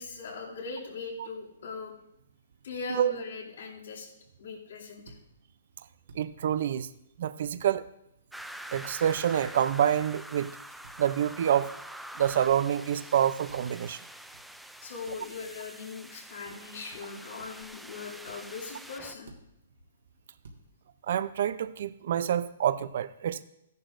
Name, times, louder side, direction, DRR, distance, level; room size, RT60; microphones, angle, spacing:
voice 1, 0.0-1.9 2.6-4.1 4.4-5.1 14.8-19.3, left 4 dB, 75° left, -3 dB, 2.7 m, -40 dB
sound 1, 5.1-5.2 6.1-6.2 7.4-7.6 8.7-8.9 9.1-9.8 10.8-11.0 12.2-12.4 13.5-13.6 14.3-14.4 15.1-15.2 16.4-16.6 16.9-17.0 17.4-17.7 18.3-18.4 19.3-19.4 20.4-20.6, right 3 dB, 75° right, 1.9 m, -51 dB
voice 2, 6.1-6.9 7.2-7.9 8.7-10.5 11.0-11.7 12.2-14.0 21.1-23.4, right 9 dB, 55° right, 15 dB, 0.5 m, -27 dB
sound 2, 8.3-19.2, right 1 dB, ahead, 0.3 m, -45 dB
14.5 x 10.5 x 2.6 m, 0.80 s
hypercardioid pair, 160°, 0 cm